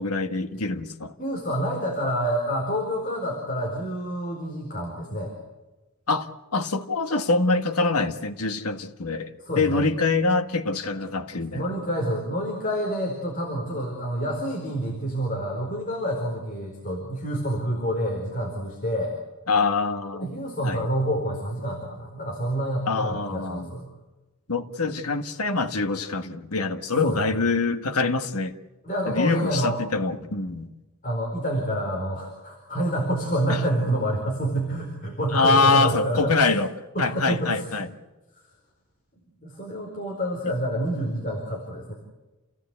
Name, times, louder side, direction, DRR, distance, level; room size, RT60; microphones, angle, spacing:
voice 1, 0.0-1.1 6.1-11.8 19.5-20.4 20.6-20.9 22.9-23.7 24.5-28.5 29.1-30.7 33.5-33.6 35.3-36.7 37.0-37.9, left 3 dB, 90° left, 7 dB, 1.7 m, -25 dB
voice 2, 1.2-5.3 9.4-9.9 11.5-19.1 20.1-23.9 26.9-27.3 28.8-29.8 31.0-36.3 36.9-37.7 39.4-41.9, equal, 40° left, 0 dB, 4.5 m, -28 dB
29.0 x 17.0 x 8.2 m, 1.1 s
head